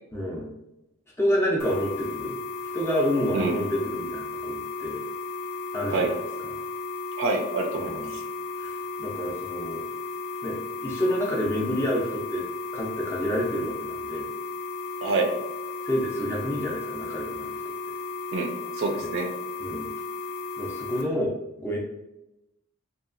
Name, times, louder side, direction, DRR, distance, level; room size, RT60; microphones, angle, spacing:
voice 1, 0.1-0.5 1.2-2.3 2.7-5.0 5.7-6.1 6.4-6.5 7.7-8.1 8.6-9.8 10.4-12.5 12.7-14.3 15.8-17.6 17.9-18.0 19.0-19.1 19.6-19.9 20.6-21.3 21.6-21.8, equal, 10° left, -2 dB, 0.4 m, -28 dB
sound 1, 1.6-21.0, left 4 dB, 75° left, 0.4 m, -35 dB
voice 2, 7.2-8.2 15.0-15.3 18.3-19.3, right 3 dB, 55° right, 3 dB, 0.4 m, -27 dB
2.8 x 2.3 x 2.4 m, 0.93 s
head